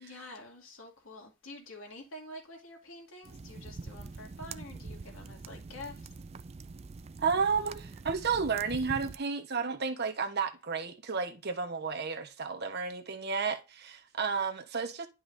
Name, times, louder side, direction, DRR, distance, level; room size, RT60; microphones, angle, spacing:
voice 1, 0.0-6.1, left 2 dB, 80° left, 2.5 m, -47 dB
sound 1, 3.2-9.2, right 4 dB, 30° right, 0.4 m, -44 dB
voice 2, 7.2-15.1, right 5 dB, 55° right, 1.2 m, -32 dB
11.0 x 5.4 x 2.7 m
head